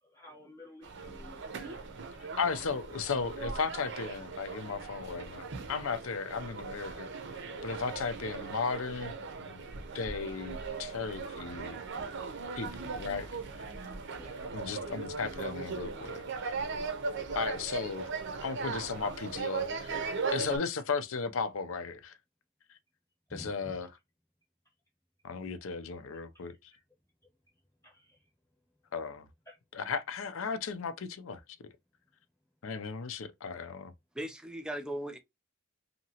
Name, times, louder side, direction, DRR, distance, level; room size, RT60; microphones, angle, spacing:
voice 1, 0.0-1.9 14.1-14.4 23.3-24.0 24.6-24.7 26.3-26.8 27.2-27.3 27.8-28.3 29.5-29.6, left 1 dB, 15° left, 1.0 m, -53 dB
sound 1, 0.8-20.6, right 4 dB, 55° right, 0.6 m, -38 dB
voice 2, 2.4-7.1 7.6-9.1 9.4-9.6 9.9-11.8 12.6-13.3 14.5-16.6 17.3-18.1 18.4-20.0 20.3-22.1 23.3-23.9 25.2-26.5 28.9-29.3 29.8-31.4 32.6-33.9, left 5 dB, 65° left, 0.5 m, -35 dB
voice 3, 34.2-35.2, right 1 dB, 5° right, 0.4 m, -37 dB
2.8 x 2.8 x 2.8 m
head